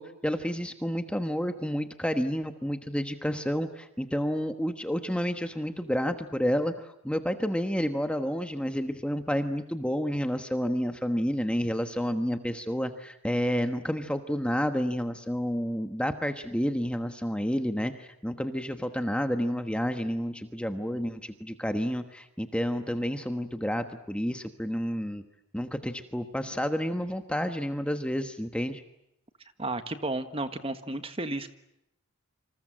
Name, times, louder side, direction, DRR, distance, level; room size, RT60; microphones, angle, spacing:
voice 1, 0.0-25.2 25.5-28.8, equal, 5° left, 7 dB, 1.2 m, -30 dB
voice 2, 29.6-31.5, right 2 dB, 25° right, 9 dB, 1.5 m, -33 dB
28.0 x 26.5 x 7.6 m, 0.80 s
head